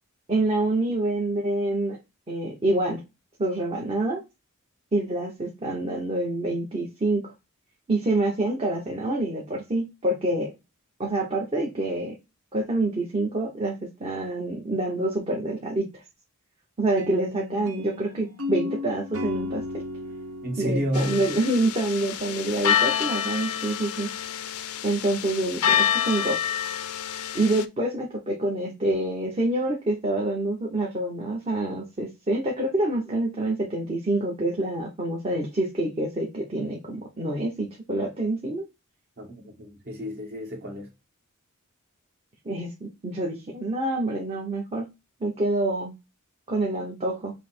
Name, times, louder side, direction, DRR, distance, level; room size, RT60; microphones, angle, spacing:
voice 1, 0.3-2.0 2.3-3.0 3.4-4.2 4.9-7.3 7.9-10.5 11.0-12.2 12.5-15.9 16.8-19.6 20.6-24.1 24.8-26.4 27.3-38.6 42.4-44.9 45.2-45.9 46.5-47.3, right 2 dB, 30° right, 0.9 m, -27 dB
sound 1, 17.0-22.1, left 3 dB, 75° right, 1.0 m, -35 dB
voice 2, 20.4-21.2 39.2-40.9, equal, 45° right, 1.7 m, -30 dB
sound 2, 20.9-27.7, left 9 dB, 80° left, 0.5 m, -27 dB
5.5 x 2.1 x 4.3 m
head